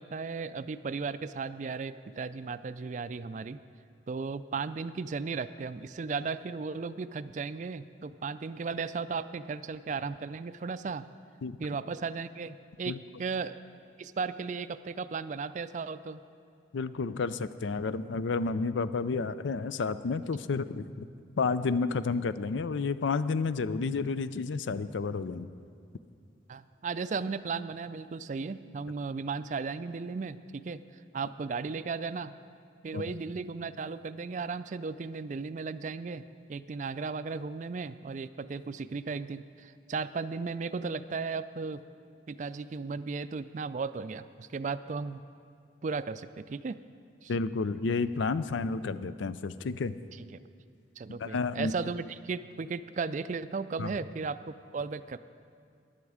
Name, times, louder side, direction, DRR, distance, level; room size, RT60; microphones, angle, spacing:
voice 1, 0.0-3.6 4.1-11.1 11.6-13.5 14.0-16.2 26.5-30.8 31.1-32.3 32.8-36.2 36.5-41.8 42.3-45.2 45.8-46.8 47.2-47.3 50.3-50.4 51.0-55.2, right 4 dB, 40° right, 13 dB, 0.3 m, -35 dB
voice 2, 16.7-21.1 21.4-25.5 32.9-33.0 47.3-50.0 51.1-51.7 53.8-53.9, left 4 dB, 85° left, 14 dB, 0.4 m, -31 dB
15.0 x 10.5 x 4.9 m, 2.4 s
head